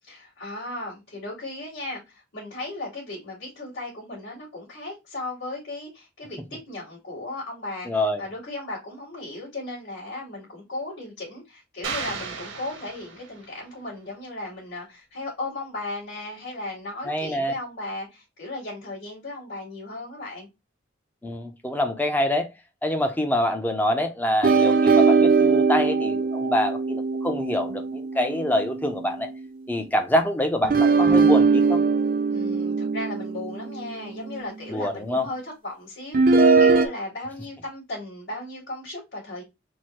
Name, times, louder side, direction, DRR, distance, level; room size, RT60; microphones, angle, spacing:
voice 1, 0.0-20.5 32.3-39.4, left 2 dB, 60° left, 2.5 m, -36 dB
voice 2, 7.9-8.2 17.1-17.5 21.2-22.5 22.8-29.3 29.7-31.8 34.7-35.2, left 1 dB, 10° left, 0.5 m, -25 dB
sound 1, 11.8-13.6, right 5 dB, 75° right, 0.9 m, -34 dB
sound 2, 24.4-29.0 30.6-34.8 36.1-36.9, right 4 dB, 45° right, 0.5 m, -21 dB
4.6 x 2.1 x 4.3 m
head